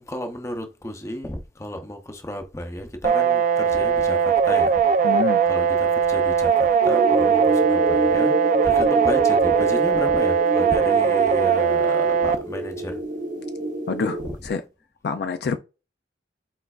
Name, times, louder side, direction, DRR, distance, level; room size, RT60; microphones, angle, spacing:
voice 1, 0.0-4.8 5.5-8.3 8.6-13.0 14.2-14.4, equal, 15° left, 0.6 m, -33 dB
sound 1, 3.0-12.4, right 6 dB, 40° right, 0.3 m, -20 dB
voice 2, 5.0-5.4 13.9-14.6 15.0-15.6, left 5 dB, 60° left, 0.3 m, -27 dB
sound 2, 6.8-14.3, right 1 dB, 80° right, 1.9 m, -27 dB
4.5 x 4.5 x 2.3 m
head